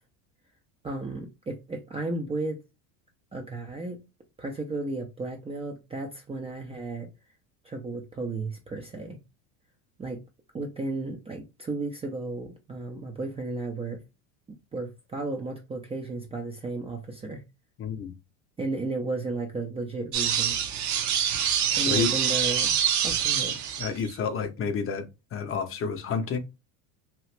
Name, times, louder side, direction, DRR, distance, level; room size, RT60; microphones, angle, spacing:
voice 1, 0.8-2.6 3.3-4.0 4.4-7.1 7.6-9.2 10.0-10.2 10.5-14.0 14.7-17.4 18.6-20.6 21.8-22.8 23.0-23.6, right 3 dB, 15° right, 0.4 m, -34 dB
voice 2, 17.8-18.1 21.8-22.1 23.8-25.0 25.3-26.4, left 6 dB, 30° left, 0.6 m, -29 dB
sound 1, 20.1-24.2, right 9 dB, 40° right, 0.8 m, -25 dB
2.9 x 2.4 x 3.1 m
supercardioid pair, 110°, 42 cm